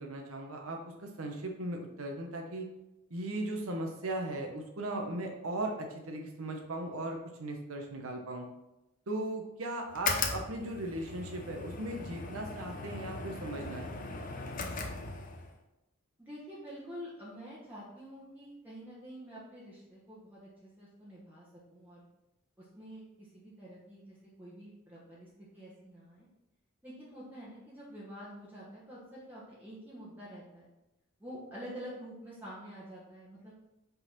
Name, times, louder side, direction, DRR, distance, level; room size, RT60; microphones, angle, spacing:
voice 1, 0.0-2.6 3.1-8.5 9.1-14.2, right 1 dB, 80° right, 3 dB, 1.0 m, -38 dB
sound 1, 9.9-15.6, left 4 dB, 40° left, 0.8 m, -38 dB
voice 2, 16.2-22.0 22.6-26.3 26.8-30.7 31.2-33.5, equal, 10° right, -8 dB, 1.3 m, -48 dB
5.5 x 3.9 x 5.8 m, 0.94 s
head